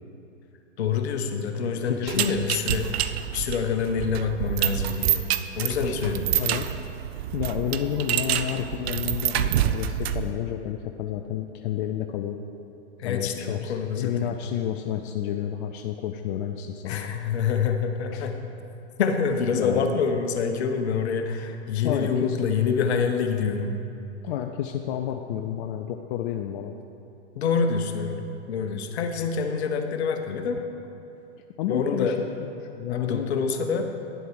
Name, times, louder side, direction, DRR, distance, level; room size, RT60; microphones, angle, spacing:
voice 1, 0.8-2.9 3.3-5.2 5.5-6.4 13.0-14.3 16.8-18.4 19.0-23.7 27.3-28.2 28.5-30.6 31.7-32.2 32.9-33.9, left 6 dB, 65° left, 5 dB, 1.1 m, -26 dB
voice 2, 1.8-2.4 5.8-6.7 7.3-12.4 13.0-17.2 18.1-18.3 19.5-19.9 21.8-22.5 24.2-26.7 31.6-32.5 32.7-33.3, left 10 dB, 45° left, 5 dB, 0.6 m, -31 dB
sound 1, 2.1-10.3, right 11 dB, 60° right, 0.6 m, -27 dB
10.0 x 7.8 x 4.8 m, 2.8 s
hypercardioid pair, 110°, 35 cm